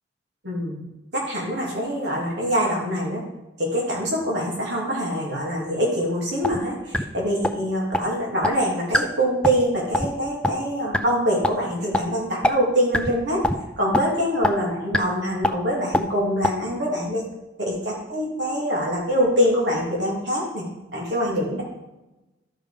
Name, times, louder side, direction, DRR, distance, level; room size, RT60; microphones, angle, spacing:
voice 1, 0.4-0.8 1.1-3.2 3.6-13.4 13.8-17.3 17.6-17.7 18.1-21.6, equal, 70° right, -4 dB, 2.6 m, -24 dB
sound 1, 6.4-6.6 6.9-7.0 7.4-7.5 7.9-8.0 8.4-8.5 8.9-9.0 9.4-9.6 9.9-10.1 10.4-10.5 10.9-11.0 11.4-11.5 11.9-12.0 12.4-12.5 12.9-13.1 13.4-13.6 13.9-14.0 14.4-14.5 14.9-15.0 15.4-15.5 15.9-16.0 16.4-16.5, left 1 dB, 5° left, 0.4 m, -20 dB
12.5 x 5.3 x 5.0 m, 0.99 s
head